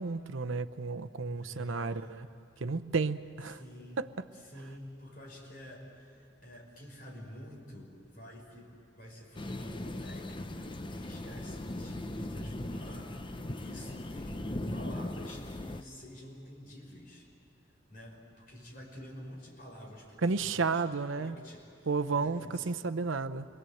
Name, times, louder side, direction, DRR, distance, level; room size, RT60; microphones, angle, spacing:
voice 1, 0.0-2.3 2.6-3.6 4.0-4.1 20.2-21.4 21.9-23.5, right 4 dB, 85° right, 10 dB, 0.7 m, -32 dB
voice 2, 1.4-2.2 3.5-4.0 4.3-17.3 17.9-20.8 21.1-22.8, equal, 45° left, -1 dB, 5.7 m, -49 dB
sound 1, 9.3-15.8, left 1 dB, 25° left, 0.7 m, -39 dB
28.0 x 23.0 x 7.9 m, 2.5 s
head